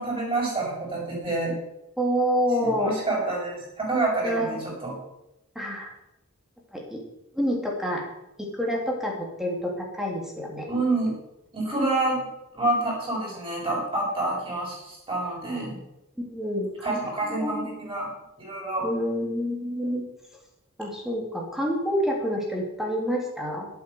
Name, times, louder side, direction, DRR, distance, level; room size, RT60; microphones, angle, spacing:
voice 1, 0.0-1.5 2.6-4.9 10.7-11.1 11.5-12.2 12.5-15.8 16.8-18.1 18.4-18.9, right 2 dB, 25° right, -2 dB, 6.3 m, -27 dB
voice 2, 2.0-2.9 4.2-4.6 5.5-5.9 6.7-7.0 7.3-8.0 8.4-10.7 16.3-17.7 18.8-20.0 20.8-23.7, equal, ahead, -1 dB, 2.9 m, -28 dB
12.0 x 8.5 x 6.9 m, 0.87 s
head